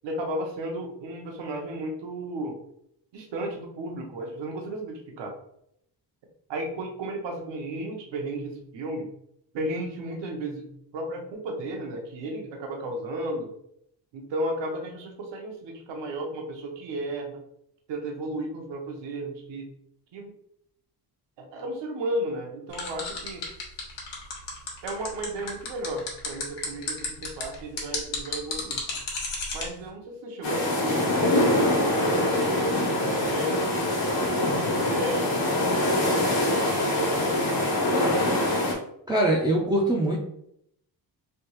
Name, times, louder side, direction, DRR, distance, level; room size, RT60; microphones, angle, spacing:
voice 1, 0.0-2.6 3.1-5.3 6.5-9.1 9.5-13.5 14.1-17.4 17.9-19.7 20.1-20.3 21.4-23.4 24.8-29.0 29.5-33.9 34.4-37.7, right 1 dB, 85° right, 2 dB, 1.0 m, -34 dB
sound 1, 22.7-29.6, left 4 dB, 90° left, 1.2 m, -32 dB
sound 2, 30.4-38.7, left 1 dB, 60° left, 1.1 m, -24 dB
voice 2, 39.1-40.2, right 1 dB, 10° right, -4 dB, 0.4 m, -22 dB
3.4 x 2.7 x 3.0 m, 0.74 s
cardioid pair, 170°, 42 cm